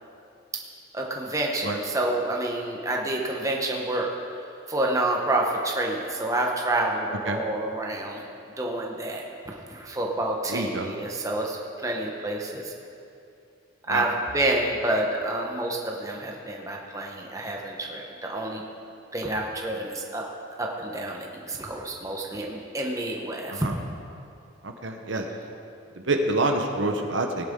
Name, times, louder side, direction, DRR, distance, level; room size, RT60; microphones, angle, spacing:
voice 1, 0.9-4.1 4.7-8.2 8.6-12.7 13.9-18.6 19.1-20.2 20.6-23.7, right 1 dB, 15° right, 0 dB, 1.1 m, -28 dB
voice 2, 10.5-10.9 13.9-14.0 23.5-23.7 24.6-25.3 26.1-27.5, right 2 dB, 70° right, 4 dB, 1.0 m, -27 dB
17.5 x 11.0 x 3.8 m, 2.6 s
head